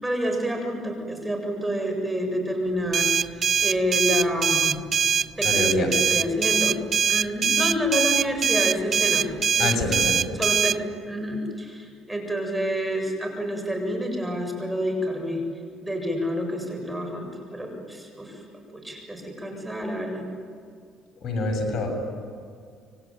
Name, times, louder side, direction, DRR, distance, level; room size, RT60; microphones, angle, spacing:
voice 1, 0.0-4.8 5.4-6.8 7.1-9.3 9.6-9.7 10.3-10.8 11.0-15.4 15.8-20.3, equal, 10° right, 3 dB, 7.6 m, -28 dB
sound 1, 2.9-10.8, right 7 dB, 45° right, 0.6 m, -22 dB
voice 2, 5.4-5.9 9.6-10.2 21.2-21.9, left 2 dB, 55° left, 4 dB, 7.5 m, -26 dB
27.5 x 23.5 x 9.1 m, 2.1 s
cardioid pair, 100°, 0 cm